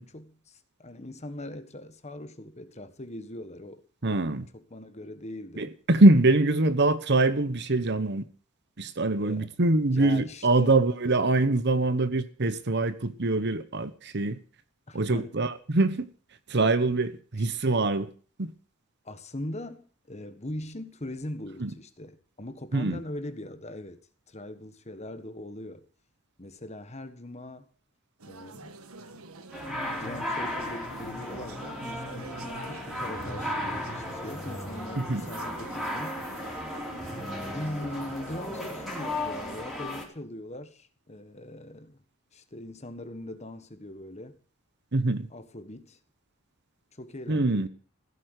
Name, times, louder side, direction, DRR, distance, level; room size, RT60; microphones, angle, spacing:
voice 1, 0.1-4.2 4.5-5.7 9.2-9.5 9.9-10.8 14.9-15.3 19.0-24.0 24.3-25.8 26.4-27.7 28.3-28.8 29.1-29.3 29.9-36.2 37.5-42.0 42.3-44.4 45.3-46.0 46.9-47.7, left 1 dB, 30° left, 1.5 m, -41 dB
voice 2, 4.0-4.5 5.6-8.3 8.8-14.4 14.9-16.0 16.5-18.1 18.4-18.5 21.6-21.7 22.7-23.0 35.0-35.2 44.9-45.3 47.3-47.7, right 2 dB, 50° right, 1.1 m, -24 dB
sound 1, 28.2-39.6, right 3 dB, 85° right, 1.4 m, -46 dB
sound 2, 29.5-40.1, left 1 dB, ahead, 4.0 m, -35 dB
16.0 x 8.6 x 8.2 m
head